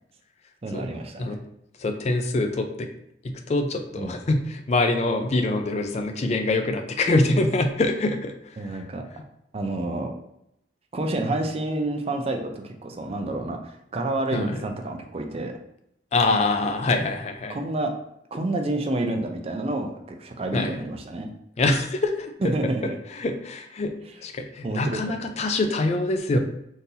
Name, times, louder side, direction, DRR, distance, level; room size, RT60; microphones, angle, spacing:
voice 1, 0.6-1.4 4.0-4.1 8.6-9.0 9.5-10.1 10.9-15.5 17.5-17.9 18.3-19.9 20.2-21.3 22.4-23.0 24.6-25.1, right 2 dB, 35° right, 3 dB, 0.4 m, -29 dB
voice 2, 1.8-2.9 3.2-8.9 14.3-14.6 16.1-17.6 20.5-20.8 21.6-22.5 23.1-23.9 24.2-26.4, left 2 dB, 40° left, 6 dB, 0.4 m, -25 dB
3.8 x 2.7 x 2.7 m, 0.78 s
head